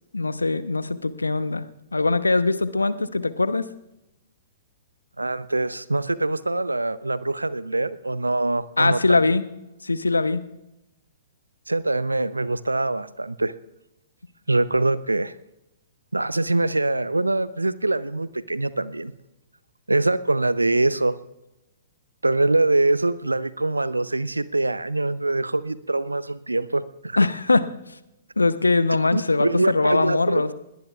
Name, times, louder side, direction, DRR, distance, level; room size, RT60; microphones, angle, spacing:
voice 1, 0.1-1.7 1.9-3.7 8.8-9.4 9.8-10.4 27.2-27.6 28.4-30.5, left 3 dB, 80° left, 14 dB, 0.9 m, -21 dB
voice 2, 5.2-9.2 11.7-13.5 14.5-15.3 16.1-19.1 19.9-21.1 22.2-27.2 29.1-30.4, right 2 dB, 85° right, 17 dB, 0.6 m, -24 dB
21.0 x 18.5 x 2.4 m, 0.89 s
figure-of-eight pair, 110°, 0 cm